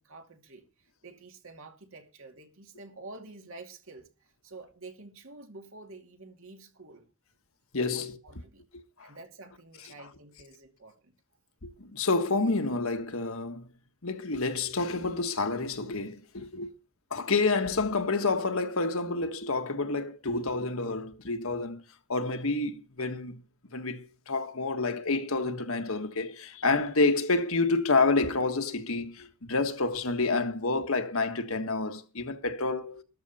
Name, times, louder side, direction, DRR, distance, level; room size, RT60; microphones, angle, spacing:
voice 1, 0.0-7.1 7.9-8.6 9.0-11.1, right 3 dB, 65° right, 2.6 m, -49 dB
voice 2, 7.7-8.1 8.7-9.1 11.6-13.7 14.0-16.7 17.1-21.8 22.1-23.4 23.7-33.0, left 3 dB, 70° left, 1.5 m, -29 dB
13.5 x 13.0 x 4.2 m
head